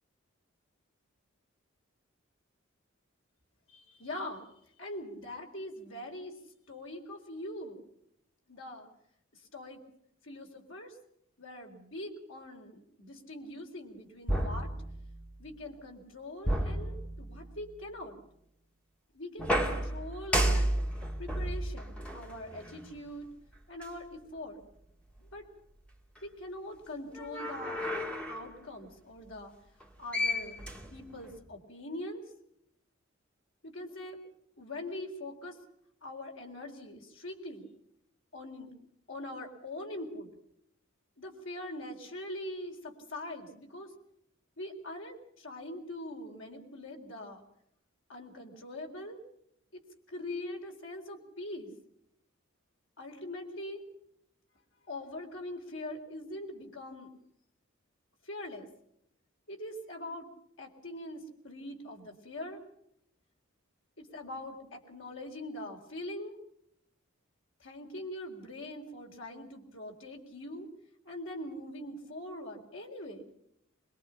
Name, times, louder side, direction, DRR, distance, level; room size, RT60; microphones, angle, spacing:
voice 1, 3.7-4.5 4.8-6.4 6.7-7.8 8.5-8.9 9.3-9.8 10.2-11.0 11.4-14.7 15.4-18.2 19.1-20.7 21.2-23.3 23.7-24.6 25.2-25.5 26.2-28.0 28.3-29.5 30.0-30.6 30.9-32.2 33.6-34.2 34.6-35.6 36.0-37.7 38.3-38.7 39.1-40.3 41.2-43.9 44.6-47.4 48.1-49.2 49.7-49.8 50.1-51.7 53.0-53.8 54.9-57.2 58.2-58.7 59.5-60.3 60.6-62.6 64.0-66.4 67.6-70.7 71.0-73.3, left 1 dB, 70° left, 2 dB, 4.1 m, -42 dB
sound 1, 14.3-15.4 16.4-17.6 19.4-23.0 23.8-23.9 27.1-28.5 29.8-29.9 30.1-31.4, equal, 5° left, 2.4 m, -32 dB
25.0 x 22.0 x 5.8 m, 0.75 s
head